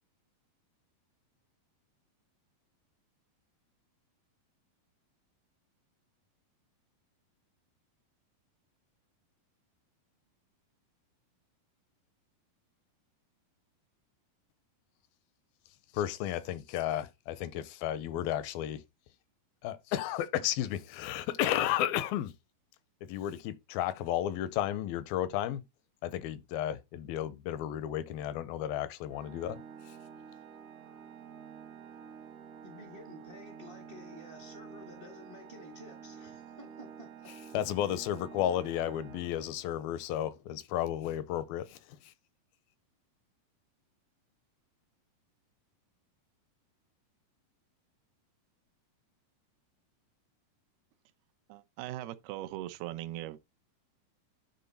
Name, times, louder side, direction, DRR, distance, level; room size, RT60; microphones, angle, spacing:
voice 1, 15.9-18.8 19.6-22.3 23.0-25.6 26.0-29.6 37.5-42.1, left 11 dB, 85° left, 2.4 m, -33 dB
Organ, 29.1-39.9, right 7 dB, 70° right, 1.5 m, -50 dB
voice 2, 32.6-37.3, left 2 dB, 55° right, 0.6 m, -51 dB
voice 3, 51.5-53.4, right 14 dB, 90° right, 2.7 m, -40 dB
9.6 x 3.9 x 4.1 m
omnidirectional pair, 4.3 m